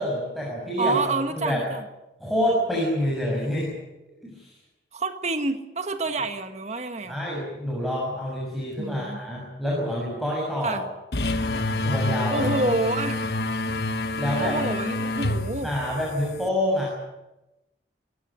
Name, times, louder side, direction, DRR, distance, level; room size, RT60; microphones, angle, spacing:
voice 1, 0.0-1.0 1.4-1.6 2.2-3.8 4.2-4.5 7.1-10.8 11.8-12.4 14.2-14.6 15.6-16.9, equal, ahead, -4 dB, 6.5 m, -27 dB
voice 2, 0.8-1.8 4.9-7.2 8.8-9.2 10.6-10.8 12.3-13.2 14.4-15.7, right 2 dB, 40° right, 8 dB, 1.6 m, -28 dB
sound 1, 11.1-16.5, left 2 dB, 60° left, 1.4 m, -27 dB
25.5 x 14.5 x 9.9 m, 0.99 s
head